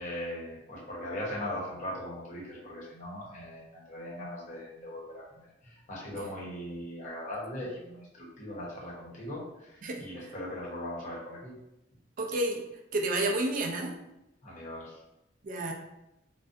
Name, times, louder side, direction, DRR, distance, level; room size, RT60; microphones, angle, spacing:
voice 1, 0.0-11.5 14.4-15.0, left 1 dB, 45° left, -5 dB, 0.8 m, -39 dB
voice 2, 12.2-12.6 12.9-14.0 15.4-15.7, right 2 dB, 45° right, 2 dB, 0.4 m, -30 dB
2.4 x 2.1 x 2.5 m, 0.88 s
head